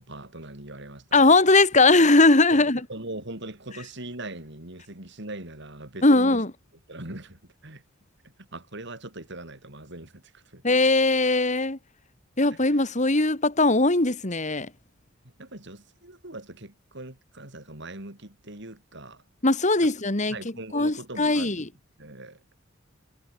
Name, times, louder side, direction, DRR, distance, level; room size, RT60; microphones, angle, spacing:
voice 1, 0.0-1.3 2.5-6.4 6.9-7.8 8.4-10.6 12.5-12.6 15.4-19.2 19.8-19.9 20.3-21.7 22.0-22.4, right 2 dB, 60° right, 5.7 m, -41 dB
voice 2, 1.1-2.8 6.0-6.5 10.6-11.8 12.4-14.7 19.4-20.4 20.7-21.7, left 2 dB, 35° left, 2.4 m, -20 dB
head